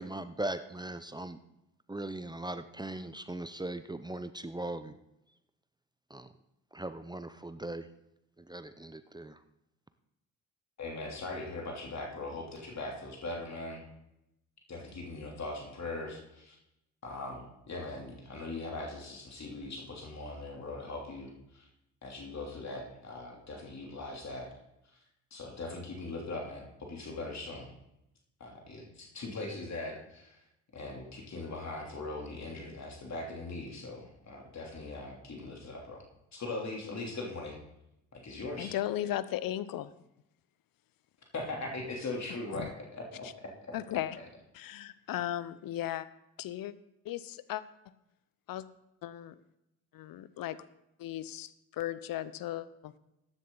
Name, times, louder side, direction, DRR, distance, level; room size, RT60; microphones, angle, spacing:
voice 1, 0.0-1.4 1.9-5.0 6.1-6.3 6.7-7.9 8.4-9.4, right 1 dB, 10° right, 12 dB, 0.7 m, -39 dB
voice 2, 10.8-13.9 14.7-16.6 17.0-21.7 22.0-24.5 25.3-27.7 28.4-30.4 30.7-36.0 36.3-37.6 38.1-38.7 41.3-43.3 43.6-43.7, left 2 dB, 45° left, 0 dB, 3.2 m, -40 dB
voice 3, 38.6-39.9 42.5-42.7 43.7-44.2 44.5-46.1 46.4-46.7 47.0-47.6 48.5-48.6 49.0-49.3 49.9-50.6 51.0-53.0, left 13 dB, 60° left, 16 dB, 0.8 m, -36 dB
14.0 x 10.0 x 3.9 m, 0.86 s
hypercardioid pair, 55°, 39 cm